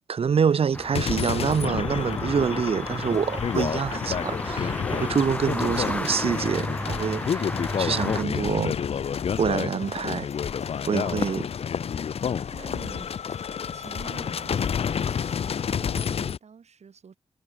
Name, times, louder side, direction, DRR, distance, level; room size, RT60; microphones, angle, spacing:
voice 1, 0.1-7.5 7.8-8.8 9.4-10.3 10.9-11.5, right 6 dB, 60° right, 0.6 m, -26 dB
sound 1, 0.7-8.2, left 1 dB, 15° left, 1.8 m, -33 dB
sound 2, 0.9-16.4, left 7 dB, 65° left, 0.4 m, -30 dB
sound 3, 1.1-16.0, left 7 dB, 85° left, 1.0 m, -40 dB
voice 2, 12.5-13.1 13.7-14.9 15.7-17.2, right 6 dB, 80° right, 6.6 m, -46 dB
wide cardioid pair, 130°, 11 cm